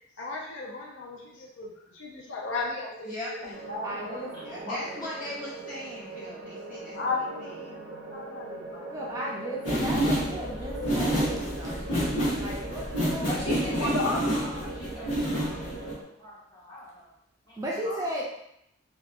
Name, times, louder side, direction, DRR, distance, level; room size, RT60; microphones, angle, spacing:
voice 1, 0.2-4.8 6.9-9.3 9.7-11.0 13.7-14.9 17.8-18.0, left 3 dB, 70° left, -2 dB, 0.4 m, -36 dB
voice 2, 3.0-3.6 4.3-7.1 7.4-7.7, left 1 dB, 45° left, -7 dB, 1.1 m, -39 dB
sound 1, 3.5-16.0, right 3 dB, 75° right, 0.5 m, -41 dB
voice 3, 3.8-4.3 8.9-13.3 17.6-18.2, right 1 dB, 20° right, -4 dB, 0.4 m, -36 dB
sound 2, 9.6-15.9, equal, 90° left, 1.0 m, -28 dB
voice 4, 13.2-17.1 17.4-17.7, equal, 25° left, -8 dB, 1.1 m, -41 dB
2.7 x 2.2 x 2.4 m, 0.76 s
head